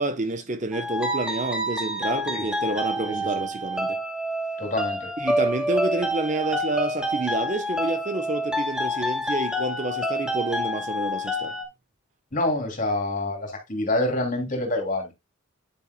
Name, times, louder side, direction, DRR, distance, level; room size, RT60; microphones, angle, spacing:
voice 1, 0.0-4.0 5.2-11.5, right 2 dB, 35° right, 0.8 m, -29 dB
sound 1, 0.7-11.6, equal, 5° right, 2.3 m, -28 dB
voice 2, 4.6-5.1 12.3-15.1, left 2 dB, 40° left, 2.8 m, -26 dB
9.9 x 7.5 x 2.2 m
head